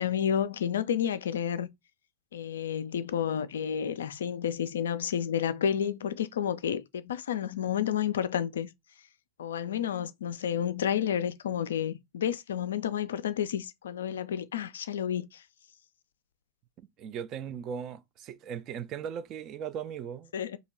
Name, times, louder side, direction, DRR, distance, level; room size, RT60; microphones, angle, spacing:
voice 1, 0.0-1.7 2.3-8.7 9.4-15.4 20.3-20.6, left 9 dB, 65° left, 0.3 m, -30 dB
voice 2, 17.0-20.3, right 8 dB, 35° right, 0.4 m, -38 dB
2.9 x 2.7 x 4.3 m
figure-of-eight pair, 90°, 0 cm